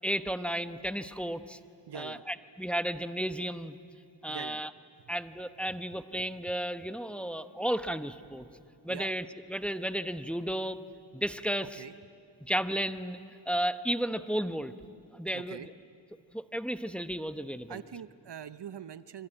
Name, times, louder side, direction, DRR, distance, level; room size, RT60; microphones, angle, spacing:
voice 1, 0.0-1.6 1.9-3.8 4.2-4.7 5.1-8.5 8.8-10.8 11.1-11.8 12.4-13.2 13.5-14.7 15.1-15.7 16.3-17.8, equal, 5° left, 10 dB, 1.0 m, -33 dB
voice 2, 1.9-2.2 4.3-4.6 8.9-9.1 11.8-11.9 15.3-15.7 17.7-19.3, right 8 dB, 65° right, 14 dB, 0.8 m, -43 dB
26.5 x 24.5 x 9.0 m, 2.5 s
wide cardioid pair, 55°, 44 cm